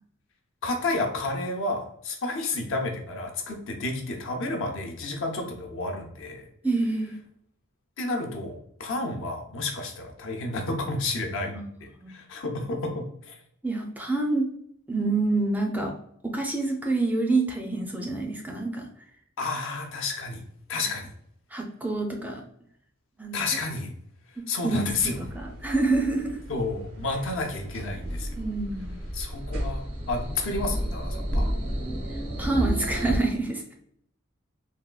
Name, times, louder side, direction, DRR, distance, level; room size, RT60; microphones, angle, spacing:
voice 1, 0.6-6.5 8.0-13.4 19.4-20.4 20.7-21.1 23.3-23.9 24.5-25.2 26.5-28.4 29.1-31.5, left 2 dB, 65° left, 3 dB, 0.6 m, -31 dB
voice 2, 6.6-7.2 11.5-11.7 12.0-12.1 13.6-14.5 14.9-15.9 16.2-18.8 21.5-22.4 23.2-23.5 24.4-25.3 25.6-26.4 28.4-29.0 32.4-33.7, right 3 dB, 10° right, 1 dB, 0.4 m, -27 dB
sound 1, 24.9-33.2, equal, 80° right, 0.8 m, -32 dB
3.5 x 2.2 x 2.3 m, 0.69 s
head